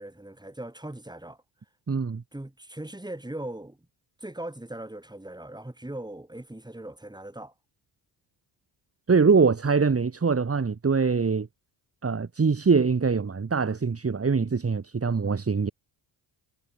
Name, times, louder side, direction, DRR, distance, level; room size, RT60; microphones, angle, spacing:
voice 1, 0.0-1.4 2.3-3.8 4.2-7.5, right 1 dB, 10° right, 5.9 m, -39 dB
voice 2, 1.9-2.2 9.1-11.5 12.0-15.7, right 5 dB, 30° right, 2.4 m, -23 dB
cardioid pair, 80°, 47 cm